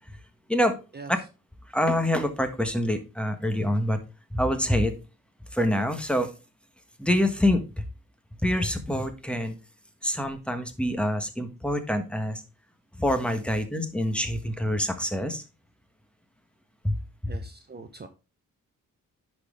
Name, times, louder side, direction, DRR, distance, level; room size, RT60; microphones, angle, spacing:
voice 1, 0.9-1.3 17.3-18.1, right 4 dB, 30° right, 7 dB, 0.8 m, -43 dB
voice 2, 1.7-4.0 4.3-4.9 5.5-6.3 7.0-7.6 8.4-9.5 10.0-12.4 13.0-15.4 16.8-17.0, left 1 dB, 5° left, 7 dB, 1.3 m, -26 dB
10.5 x 4.2 x 3.6 m, 0.31 s
cardioid pair, 95°, 33 cm